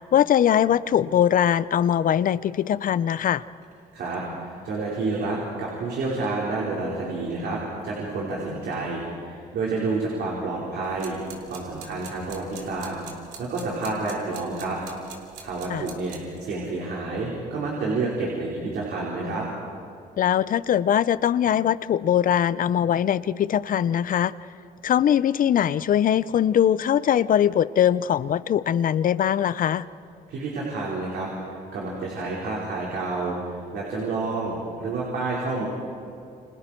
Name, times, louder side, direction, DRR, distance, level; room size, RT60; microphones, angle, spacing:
voice 1, 0.1-3.4 15.7-15.8 20.2-24.3 24.8-29.9, left 10 dB, 55° left, 17 dB, 0.6 m, -21 dB
voice 2, 3.9-11.2 11.5-12.9 13.4-14.8 15.4-19.5 30.3-35.6, right 3 dB, 70° right, -4 dB, 4.9 m, -29 dB
sound 1, 10.8-16.4, right 6 dB, 90° right, 3.0 m, -46 dB
29.5 x 26.0 x 4.6 m, 2.4 s
cardioid pair, 85°, 17 cm